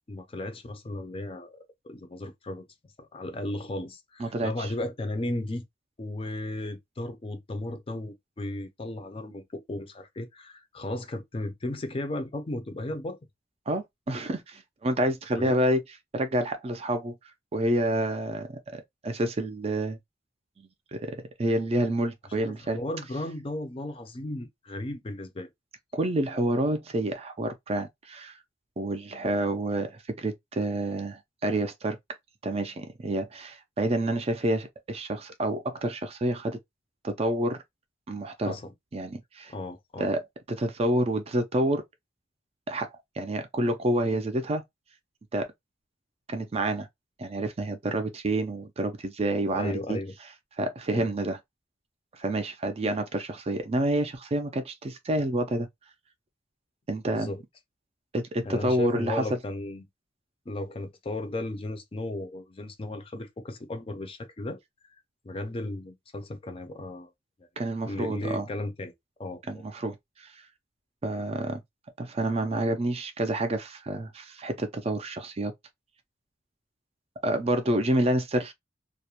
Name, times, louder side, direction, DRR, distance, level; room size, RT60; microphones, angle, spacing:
voice 1, 0.1-2.7 3.0-5.6 6.0-13.2 15.3-15.5 22.4-25.5 38.5-38.7 39.5-40.1 49.5-50.1 50.9-51.1 57.1-57.4 58.4-59.8 60.5-64.6 65.2-67.1 67.8-68.9 69.2-69.6, left 1 dB, 30° left, 0.5 m, -35 dB
voice 2, 4.2-4.7 13.7-15.8 16.1-17.1 17.5-20.0 20.6-22.8 25.9-28.4 28.8-32.0 32.4-36.6 37.0-37.6 38.1-38.6 38.9-39.5 40.0-41.8 42.7-44.6 45.3-45.5 46.3-46.9 47.2-50.0 50.6-51.4 52.1-55.7 56.9-57.3 58.1-59.2 67.6-68.5 69.5-70.3 71.0-71.6 72.0-75.5 77.2-78.5, right 1 dB, 35° right, 0.4 m, -28 dB
2.4 x 2.1 x 2.8 m
head